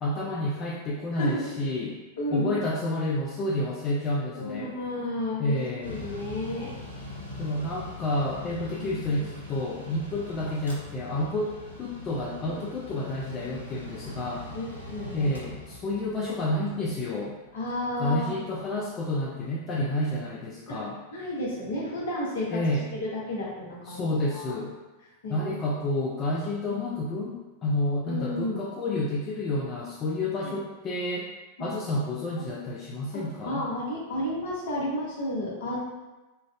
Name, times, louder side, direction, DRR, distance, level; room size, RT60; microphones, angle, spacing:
voice 1, 0.0-2.0 2.3-4.7 5.4-6.0 7.4-14.5 15.1-17.4 18.0-21.0 22.5-22.9 23.9-24.7 25.3-31.3 31.6-33.7, left 1 dB, 30° left, -4 dB, 0.4 m, -30 dB
voice 2, 1.1-1.5 2.2-2.5 4.3-6.7 8.7-9.3 12.4-12.6 14.0-14.1 14.5-15.3 17.5-18.3 20.7-20.8 21.1-22.6 22.9-24.5 25.2-25.6 26.7-27.1 28.1-28.6 30.4-30.5 33.1-35.8, left 1 dB, 60° left, -4 dB, 0.8 m, -32 dB
Mechanical fan, 5.8-19.2, left 2 dB, 80° left, 0.5 m, -42 dB
3.1 x 2.5 x 2.2 m, 1.1 s
figure-of-eight pair, 90°, 0 cm